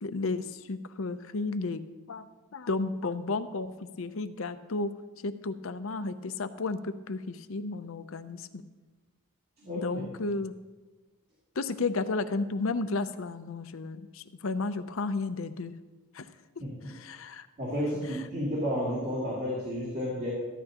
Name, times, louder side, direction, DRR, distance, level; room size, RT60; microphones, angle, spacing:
voice 1, 0.0-1.8 2.1-2.3 2.5-4.9 5.2-8.7 9.8-10.5 11.6-15.7 16.1-16.3 16.9-17.5, left 3 dB, 70° left, 10 dB, 0.6 m, -33 dB
voice 2, 9.6-10.0 16.6-16.9 17.6-20.3, equal, 45° right, -9 dB, 2.9 m, -32 dB
14.0 x 12.0 x 2.9 m, 1.2 s
head